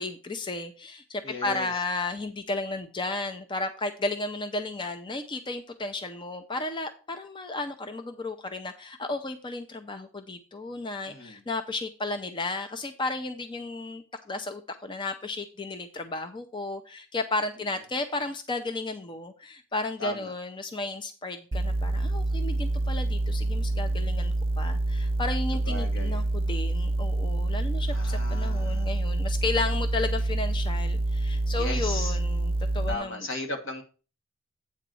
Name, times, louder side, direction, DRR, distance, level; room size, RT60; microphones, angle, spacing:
voice 1, 0.0-33.3, left 2 dB, 25° left, 8 dB, 0.5 m, -33 dB
voice 2, 1.2-1.7 11.1-11.4 20.0-20.3 25.7-26.3 27.9-28.9 31.5-32.2 32.9-33.8, left 2 dB, 75° left, 3 dB, 1.8 m, -36 dB
sound 1, 21.5-32.9, right 2 dB, 30° right, 0.5 m, -27 dB
8.6 x 4.0 x 6.1 m, 0.36 s
head